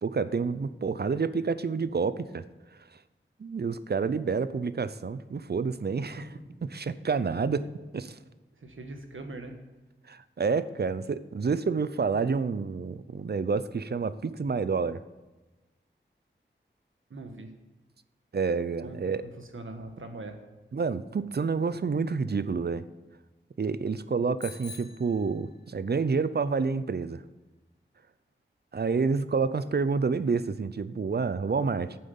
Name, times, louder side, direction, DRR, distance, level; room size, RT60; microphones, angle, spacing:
voice 1, 0.0-2.4 3.4-6.2 6.7-7.7 7.9-8.2 10.1-15.0 18.3-19.2 20.7-22.8 23.6-27.2 28.7-32.0, right 5 dB, 55° right, 14 dB, 0.5 m, -28 dB
voice 2, 8.6-9.6 17.1-17.5 18.8-20.4, right 2 dB, 90° right, 5 dB, 1.4 m, -42 dB
Bicycle bell, 24.4-25.9, left 5 dB, 55° left, 1.9 m, -47 dB
9.2 x 7.7 x 6.9 m, 1.1 s
wide cardioid pair, 80°, 20 cm